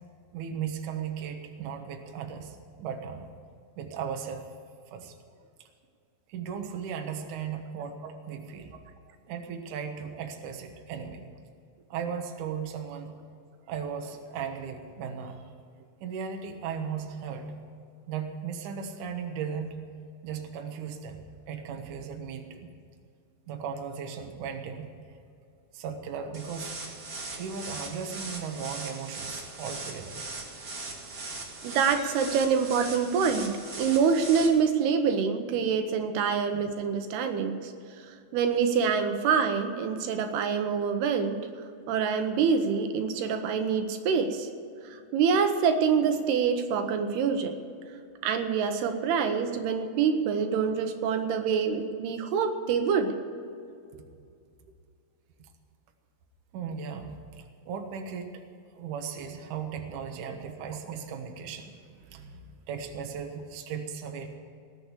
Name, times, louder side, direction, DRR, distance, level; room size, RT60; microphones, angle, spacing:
voice 1, 0.3-3.3 3.8-4.5 4.9-5.1 6.3-8.7 9.1-11.2 11.9-13.2 13.7-15.4 16.0-17.5 18.1-19.9 20.2-22.7 23.5-24.9 25.7-26.7 27.4-30.2 32.0-32.1 56.5-58.4 58.8-64.4, right 7 dB, 65° right, 4 dB, 2.4 m, -37 dB
sound 1, 26.3-34.5, right 3 dB, 45° right, 1.2 m, -39 dB
voice 2, 31.6-37.7 38.0-41.5 41.9-44.5 44.8-47.6 48.2-53.1 60.3-60.4, right 6 dB, 85° right, 7 dB, 3.0 m, -26 dB
19.5 x 7.1 x 8.2 m, 2.4 s
omnidirectional pair, 4.6 m